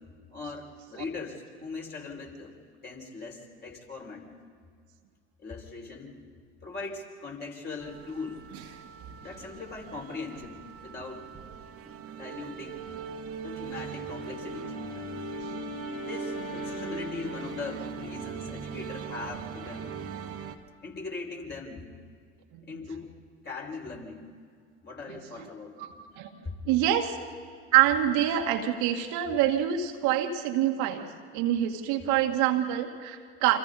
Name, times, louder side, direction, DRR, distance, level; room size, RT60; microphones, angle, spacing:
voice 1, 0.3-2.5 2.8-4.2 5.4-6.2 6.6-8.4 9.2-11.4 11.8-12.8 13.4-14.7 15.9-19.9 20.8-21.9 22.6-23.1 23.4-24.2 24.8-25.9 26.4-26.5, left 3 dB, 30° left, -1 dB, 5.6 m, -40 dB
sound 1, 7.8-20.6, right 7 dB, 40° right, 1.9 m, -40 dB
Wind instrument woodwind instrument, 14.0-18.5, left 6 dB, 60° left, 2.7 m, -41 dB
voice 2, 25.8-26.3 26.7-27.2 27.7-31.1 31.3-33.6, right 11 dB, 60° right, 3 dB, 2.0 m, -26 dB
29.0 x 26.5 x 4.2 m, 2.1 s
hypercardioid pair, 75°, 34 cm